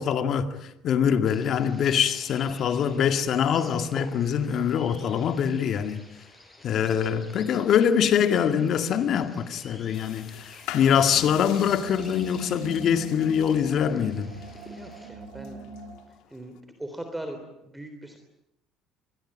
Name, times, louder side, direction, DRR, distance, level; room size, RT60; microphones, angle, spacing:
voice 1, 0.0-6.0 6.6-14.3, left 8 dB, 55° left, 2.2 m, -24 dB
sound 1, 1.2-15.1, left 1 dB, 15° left, 7.0 m, -49 dB
sound 2, 9.9-16.6, left 12 dB, 80° left, 2.6 m, -45 dB
sound 3, 10.8-16.1, right 3 dB, 85° right, 6.3 m, -43 dB
voice 2, 14.7-15.7 16.1-18.2, right 1 dB, 10° right, 3.7 m, -40 dB
26.0 x 21.5 x 8.9 m
supercardioid pair, 95°, 0 cm